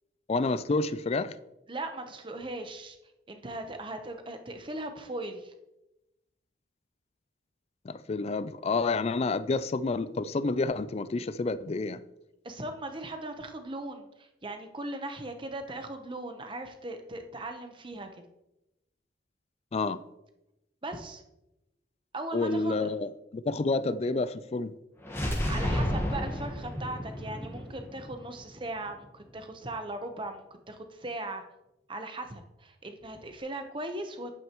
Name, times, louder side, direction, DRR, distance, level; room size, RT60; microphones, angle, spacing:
voice 1, 0.3-1.3 7.8-12.0 19.7-20.0 22.3-24.7, left 3 dB, 35° left, 15 dB, 0.3 m, -29 dB
voice 2, 1.7-3.0 3.3-5.5 12.4-18.2 20.8-21.2 22.1-22.9 25.5-31.4 31.9-34.4, right 2 dB, 25° right, 6 dB, 0.9 m, -38 dB
sound 1, 25.0-28.9, equal, 15° left, 1.5 m, -32 dB
11.0 x 8.6 x 3.0 m, 0.94 s
head